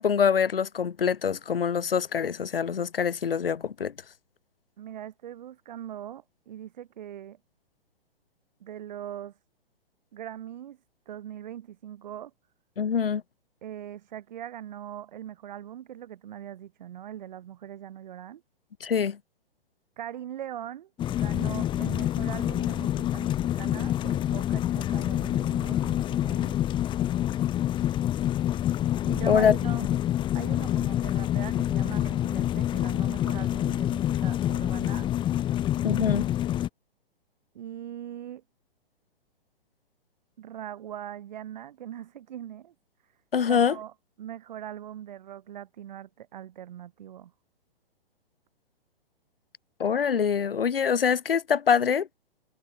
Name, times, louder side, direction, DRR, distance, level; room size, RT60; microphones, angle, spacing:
voice 1, 0.0-3.9 12.8-13.2 18.8-19.2 29.3-29.5 35.8-36.3 43.3-43.8 49.8-52.1, left 7 dB, 65° left, 1.0 m, -24 dB
voice 2, 4.8-7.4 8.6-9.4 10.1-10.8 11.1-12.3 13.6-18.4 20.0-26.6 29.0-29.8 30.3-35.1 37.5-38.4 40.4-42.7 43.5-47.3, right 11 dB, 45° right, 3.0 m, -41 dB
sound 1, 21.0-36.7, left 12 dB, 15° left, 1.5 m, -27 dB
figure-of-eight pair, 120°, 30 cm